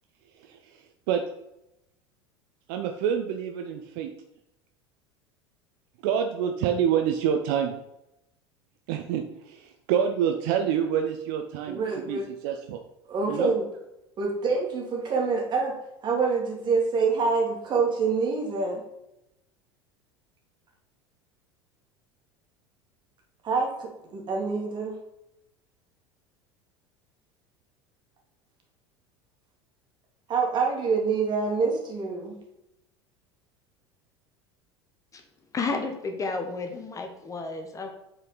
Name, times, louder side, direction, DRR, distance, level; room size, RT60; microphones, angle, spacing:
voice 1, 0.4-0.8 1.1-1.2 2.7-4.1 6.0-7.7 8.9-12.8 13.2-13.5, right 8 dB, 55° right, 5 dB, 0.6 m, -27 dB
voice 2, 11.7-12.3 13.1-13.7 14.2-15.8 16.0-18.8 23.4-25.0 30.3-32.4, right 4 dB, 35° right, 0 dB, 2.0 m, -26 dB
voice 3, 35.5-37.9, left 3 dB, 25° left, 6 dB, 0.9 m, -31 dB
7.8 x 4.4 x 3.9 m, 0.86 s
figure-of-eight pair, 75°, 14 cm